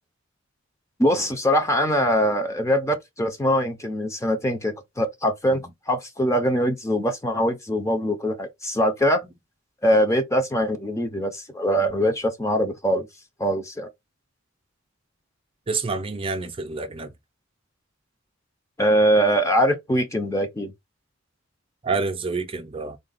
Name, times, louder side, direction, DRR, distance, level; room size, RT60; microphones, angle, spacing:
voice 1, 1.0-5.6 5.9-9.2 9.8-13.1 13.4-13.9 18.8-20.7, equal, 15° left, 0.6 m, -22 dB
voice 2, 15.7-17.1 21.8-23.0, right 4 dB, 30° right, 0.5 m, -28 dB
3.7 x 2.3 x 3.9 m
head